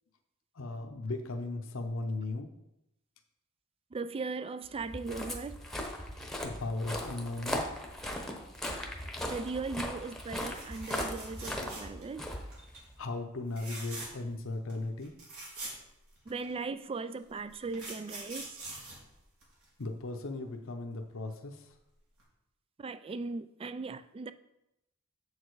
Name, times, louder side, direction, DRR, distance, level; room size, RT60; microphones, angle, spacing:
voice 1, 0.6-2.5 6.4-7.7 13.0-15.1 19.8-21.7, left 2 dB, 65° left, 0.8 m, -37 dB
voice 2, 3.9-5.6 9.3-12.3 16.3-18.6 22.8-24.3, right 4 dB, 25° right, 0.3 m, -38 dB
Walk footsteps, 4.8-13.0, left 1 dB, ahead, 1.0 m, -38 dB
sound 1, 10.5-12.2 12.5-12.8 13.5-14.3 14.7-14.8 15.0-16.5 17.3-19.8 21.7-21.9 22.2-22.3, right 2 dB, 70° right, 3.0 m, -44 dB
7.3 x 6.5 x 4.7 m
head